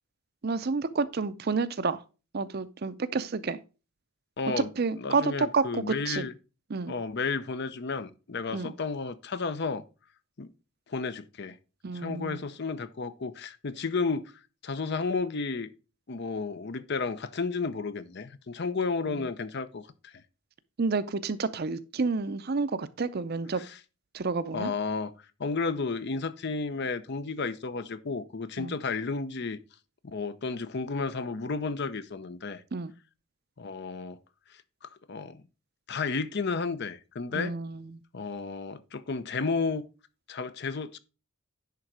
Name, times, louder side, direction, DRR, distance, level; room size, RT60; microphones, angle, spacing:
voice 1, 0.4-2.0 2.3-3.6 4.8-6.3 6.7-6.9 8.5-8.7 11.8-12.4 20.8-23.6 24.1-24.7 28.6-28.8 32.7-32.9 37.3-38.0, right 4 dB, 45° right, 0.5 m, -30 dB
voice 2, 4.4-4.7 5.0-6.3 6.9-9.8 10.4-10.5 10.9-11.6 11.9-14.3 14.6-15.7 16.1-20.1 23.6-23.8 24.5-25.1 25.4-29.6 30.0-32.6 33.6-34.2 34.5-35.4 35.9-37.5 38.1-39.8 40.3-41.0, left 4 dB, 50° left, 0.6 m, -32 dB
10.5 x 3.9 x 4.7 m
head